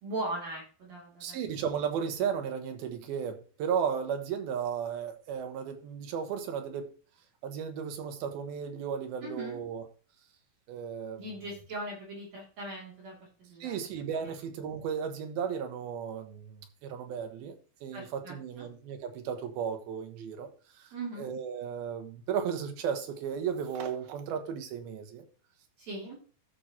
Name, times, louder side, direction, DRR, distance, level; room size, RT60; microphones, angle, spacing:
voice 1, 0.0-1.4 9.2-9.6 11.2-13.9 14.2-14.3 17.9-18.7 20.9-21.3 25.8-26.2, right 2 dB, 50° right, -3 dB, 3.7 m, -39 dB
voice 2, 1.2-6.9 7.4-9.8 10.7-11.3 13.6-25.3, right 7 dB, 90° right, 6 dB, 3.1 m, -35 dB
13.0 x 6.3 x 2.9 m, 0.37 s
omnidirectional pair, 4.2 m